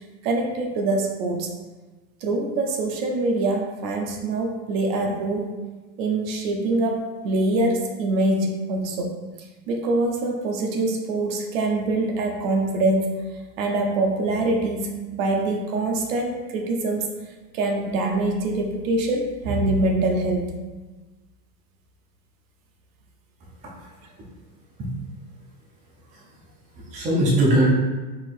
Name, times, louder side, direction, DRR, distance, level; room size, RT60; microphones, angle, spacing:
voice 1, 0.2-1.5 2.2-5.5 6.0-9.1 9.7-13.3 13.6-17.1 17.5-20.5, right 2 dB, 55° right, 2 dB, 0.8 m, -24 dB
voice 2, 26.7-27.7, right 1 dB, 15° right, -4 dB, 0.6 m, -21 dB
4.7 x 3.9 x 2.5 m, 1.2 s
supercardioid pair, 145°, 48 cm